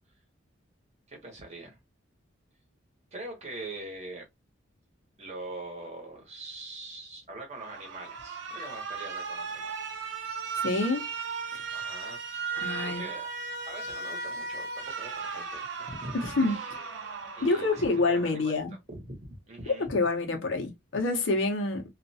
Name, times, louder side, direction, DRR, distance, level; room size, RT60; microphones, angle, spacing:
voice 1, 1.1-1.8 3.1-4.3 5.2-9.7 11.7-12.2 12.8-13.3 13.7-16.9 17.3-18.5 18.9-19.9, right 2 dB, 35° right, 0.9 m, -43 dB
Alarm, 7.6-18.6, right 5 dB, 70° right, 0.6 m, -37 dB
voice 2, 10.6-11.1 12.6-13.0 16.1-16.6 17.4-18.7 19.9-21.8, left 3 dB, 75° left, 0.8 m, -27 dB
2.4 x 2.2 x 2.6 m
head